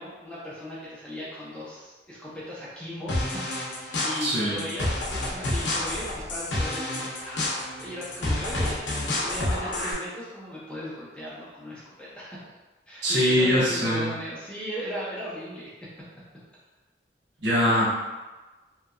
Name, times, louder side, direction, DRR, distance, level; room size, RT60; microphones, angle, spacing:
voice 1, 0.0-3.4 3.7-4.9 5.3-12.4 12.9-15.7, equal, 5° left, -8 dB, 0.6 m, -37 dB
sound 1, 3.1-9.9, left 1 dB, 85° left, 0.7 m, -29 dB
voice 2, 4.2-4.6 13.0-14.1 17.4-17.9, equal, 65° right, -7 dB, 0.9 m, -22 dB
2.8 x 2.5 x 2.3 m, 1.2 s
head